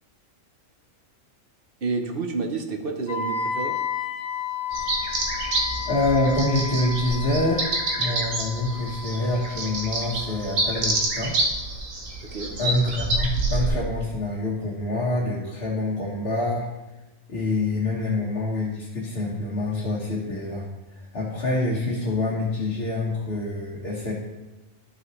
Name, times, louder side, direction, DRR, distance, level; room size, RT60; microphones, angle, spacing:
voice 1, 1.8-3.8 12.2-12.5, right 4 dB, 50° right, 4 dB, 0.9 m, -29 dB
Wind instrument woodwind instrument, 3.1-11.0, left 6 dB, 25° left, 0.8 m, -33 dB
sound 1, 4.7-13.7, right 2 dB, 75° right, 1.5 m, -28 dB
voice 2, 5.9-7.7 8.0-11.3 12.6-16.7 17.3-20.7 20.9-24.1, left 2 dB, 50° left, -6 dB, 1.4 m, -26 dB
12.5 x 5.6 x 3.1 m, 1.1 s
omnidirectional pair, 1.4 m